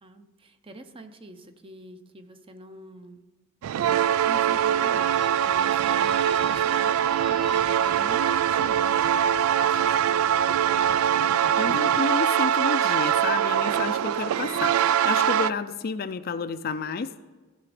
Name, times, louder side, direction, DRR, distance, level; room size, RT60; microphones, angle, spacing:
voice 1, 0.0-3.3 4.3-10.4, right 1 dB, 25° right, 8 dB, 0.7 m, -45 dB
sound 1, 3.6-15.5, right 9 dB, 85° right, 0.3 m, -23 dB
sound 2, 4.4-9.1, right 6 dB, 55° right, 1.1 m, -44 dB
voice 2, 11.5-17.1, left 5 dB, 45° left, 11 dB, 0.4 m, -30 dB
15.0 x 6.0 x 4.9 m, 1.3 s
head